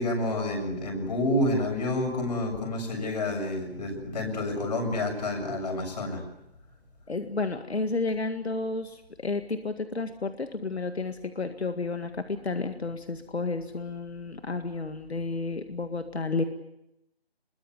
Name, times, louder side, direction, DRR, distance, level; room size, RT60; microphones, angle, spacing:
voice 1, 0.0-6.2, left 1 dB, 40° left, 3 dB, 7.1 m, -29 dB
voice 2, 7.1-16.4, left 3 dB, 85° left, 8 dB, 2.0 m, -31 dB
24.0 x 22.0 x 8.1 m, 0.83 s
figure-of-eight pair, 165°, 31 cm